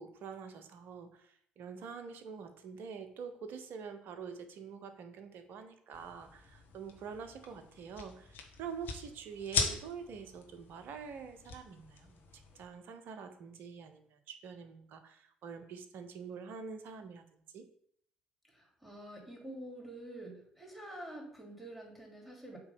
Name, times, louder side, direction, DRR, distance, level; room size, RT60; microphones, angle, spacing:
voice 1, 0.0-12.3 12.5-17.7, right 6 dB, 55° right, 8 dB, 0.8 m, -46 dB
sound 1, 5.9-12.6, left 5 dB, 55° left, 1.1 m, -41 dB
voice 2, 18.5-22.6, right 1 dB, ahead, -2 dB, 2.9 m, -47 dB
7.8 x 3.1 x 5.6 m, 0.67 s
figure-of-eight pair, 45°, 4 cm